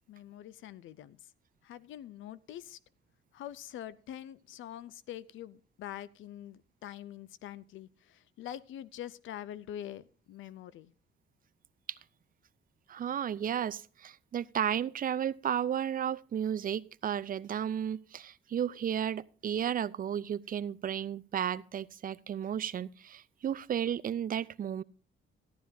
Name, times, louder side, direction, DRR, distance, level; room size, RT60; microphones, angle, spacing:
voice 1, 0.1-1.2 1.6-2.8 3.3-10.9, left 11 dB, 75° left, 18 dB, 0.6 m, -45 dB
voice 2, 12.9-24.8, right 9 dB, 45° right, 17 dB, 0.5 m, -33 dB
14.0 x 12.0 x 2.7 m, 0.39 s
cardioid pair, 90°, 20 cm